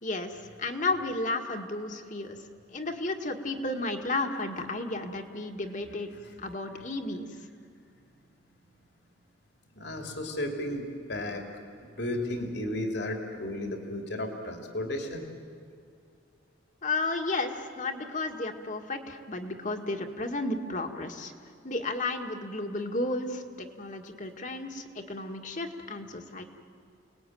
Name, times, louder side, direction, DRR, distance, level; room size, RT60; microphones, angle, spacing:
voice 1, 0.0-2.4 2.7-6.1 6.4-7.3 16.8-21.3 21.6-26.4, left 2 dB, 40° left, 4 dB, 1.9 m, -33 dB
voice 2, 9.8-11.4 11.8-15.3, left 1 dB, 65° left, 3 dB, 3.0 m, -34 dB
29.0 x 19.5 x 9.3 m, 2.4 s
head